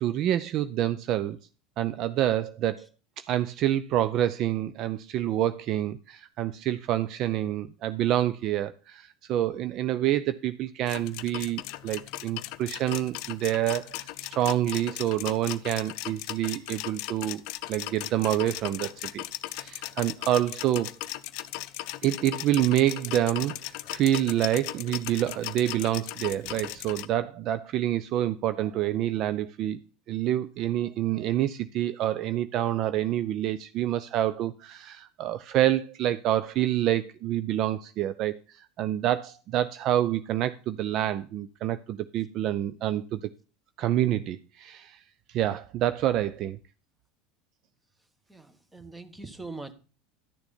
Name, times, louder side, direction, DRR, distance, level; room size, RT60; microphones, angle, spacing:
voice 1, 0.0-1.4 1.8-2.9 3.2-17.4 17.7-19.2 19.5-20.9 22.0-29.8 30.1-43.2 43.8-45.0 45.3-46.6, right 12 dB, 50° right, 0.5 m, -27 dB
sound 1, 10.9-27.1, left 16 dB, 60° left, 0.6 m, -37 dB
voice 2, 48.7-49.7, right 3 dB, 10° right, 1.4 m, -41 dB
11.5 x 6.9 x 4.3 m
hypercardioid pair, 80°, 0 cm